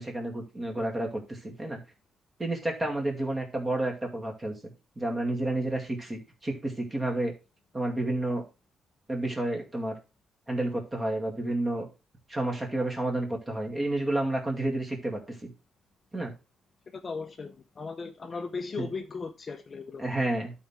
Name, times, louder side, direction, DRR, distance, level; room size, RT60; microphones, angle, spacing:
voice 1, 0.0-1.8 2.4-4.5 5.0-7.3 7.7-8.4 9.1-10.0 10.5-11.9 12.3-15.5 16.1-16.3 18.8-18.9 20.0-20.5, right 1 dB, 20° right, 2.2 m, -30 dB
voice 2, 16.9-20.0, left 4 dB, 30° left, 0.7 m, -37 dB
12.0 x 4.4 x 3.6 m
cardioid pair, 135°, 0 cm